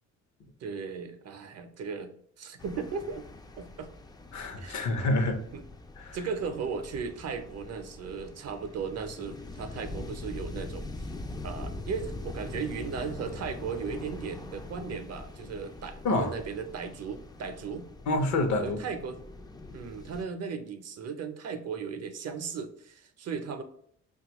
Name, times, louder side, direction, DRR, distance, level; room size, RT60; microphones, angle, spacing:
voice 1, 0.6-3.2 3.6-3.9 4.6-4.9 5.5-5.6 6.1-10.9 11.4-17.9 18.6-19.2 19.7-23.6, right 5 dB, 55° right, 0.6 m, -36 dB
sound 1, 2.6-20.2, left 2 dB, 15° left, 0.3 m, -43 dB
voice 2, 4.3-5.4 6.0-6.2 16.0-16.4 18.1-18.8, left 2 dB, 65° left, 0.7 m, -27 dB
5.3 x 2.3 x 2.9 m
cardioid pair, 90°, 30 cm